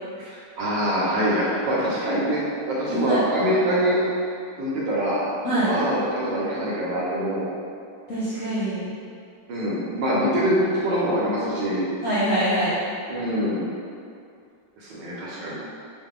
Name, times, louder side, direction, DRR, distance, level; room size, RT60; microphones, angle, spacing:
voice 1, 0.6-4.0 4.6-5.2 5.6-7.4 9.5-11.8 13.1-13.6 14.8-15.5, equal, 70° right, -7 dB, 1.3 m, -24 dB
voice 2, 2.9-3.3 5.4-5.8 8.1-8.9 12.0-12.8, right 1 dB, 70° left, -12 dB, 0.7 m, -24 dB
3.7 x 2.2 x 3.6 m, 2.4 s
omnidirectional pair, 2.2 m